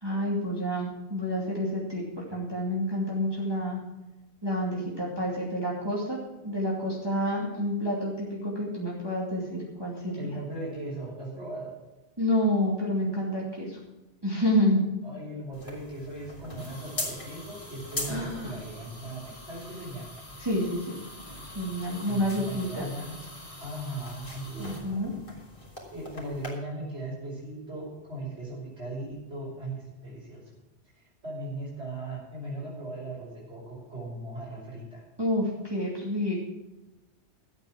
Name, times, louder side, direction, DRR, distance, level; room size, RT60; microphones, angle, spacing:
voice 1, 0.0-3.8 4.4-6.2 6.4-10.3 12.2-13.8 14.2-14.8 18.1-18.5 20.4-21.0 21.5-22.9 24.6-25.1 35.2-36.5, equal, 20° right, -5 dB, 2.5 m, -29 dB
voice 2, 10.2-11.8 15.0-20.1 22.0-23.2 23.6-25.0 25.9-30.4 31.2-35.0, right 1 dB, 80° right, -6 dB, 5.8 m, -38 dB
sound 1, 15.5-26.5, left 1 dB, 30° left, 3.5 m, -41 dB
13.5 x 8.5 x 6.0 m, 1.0 s
omnidirectional pair, 1.1 m